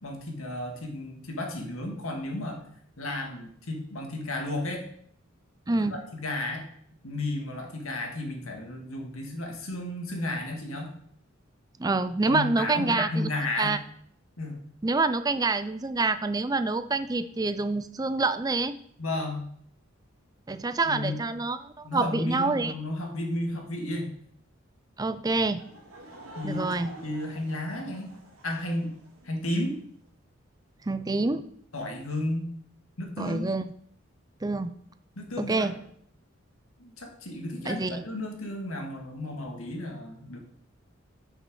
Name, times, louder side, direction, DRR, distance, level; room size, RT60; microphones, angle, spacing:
voice 1, 0.0-2.6 3.0-4.9 5.9-6.7 7.0-10.9 12.3-13.8 14.4-14.6 19.0-19.5 20.9-21.2 21.8-24.1 26.3-28.1 28.4-28.9 29.2-29.7 31.7-32.5 33.0-33.5 35.2-35.7 36.8-40.4, left 1 dB, 90° left, 2 dB, 2.0 m, -33 dB
voice 2, 5.7-6.0 11.8-13.8 14.8-18.8 20.5-22.7 25.0-25.6 26.4-26.9 30.9-31.5 33.2-33.7 34.4-34.7 35.4-35.7 37.7-38.0, right 3 dB, 20° right, 11 dB, 0.4 m, -27 dB
Laughter / Crowd, 25.5-29.7, right 1 dB, 90° right, 2.5 m, -48 dB
6.4 x 6.3 x 6.4 m, 0.65 s
head